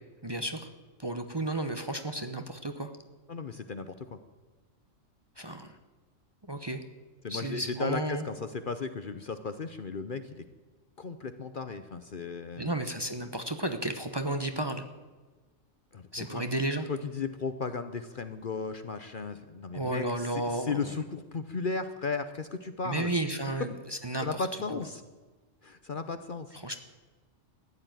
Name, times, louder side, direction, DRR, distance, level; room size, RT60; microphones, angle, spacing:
voice 1, 0.2-0.7 1.0-2.9 5.4-5.7 6.5-6.8 7.3-8.2 12.6-14.8 16.1-16.9 19.7-20.8 22.8-23.7 24.0-24.5 24.7-24.8 26.6-26.8, right 1 dB, 20° right, 7 dB, 0.9 m, -32 dB
voice 2, 3.3-4.2 7.2-10.4 11.0-12.7 15.9-16.4 16.9-23.1 24.2-25.0 25.6-26.6, left 4 dB, 45° left, 10 dB, 0.9 m, -35 dB
15.0 x 10.5 x 9.0 m, 1.3 s
omnidirectional pair, 1.3 m